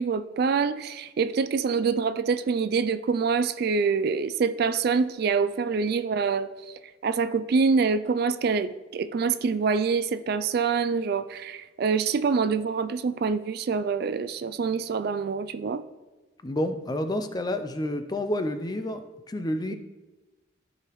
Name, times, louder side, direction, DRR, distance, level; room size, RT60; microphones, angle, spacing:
voice 1, 0.0-6.5 7.0-15.9, right 5 dB, 50° right, 12 dB, 0.3 m, -25 dB
voice 2, 16.4-19.8, left 1 dB, 20° left, 8 dB, 0.4 m, -29 dB
14.5 x 4.9 x 3.1 m, 1.1 s
head